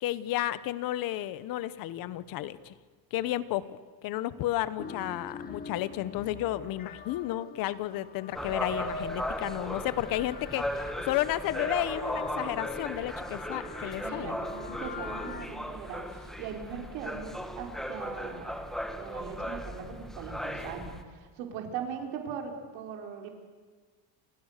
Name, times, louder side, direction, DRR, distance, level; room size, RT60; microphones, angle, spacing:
voice 1, 0.0-2.7 3.1-3.8 4.0-14.4, left 14 dB, 45° left, 16 dB, 1.1 m, -32 dB
sound 1, 4.8-15.5, left 4 dB, 20° left, 1.2 m, -41 dB
sound 2, 8.3-21.0, equal, ahead, 1.2 m, -37 dB
voice 2, 14.0-18.6 19.0-23.3, right 7 dB, 65° right, 3 dB, 4.8 m, -40 dB
30.0 x 27.0 x 6.7 m, 1.5 s
cardioid pair, 180°, 48 cm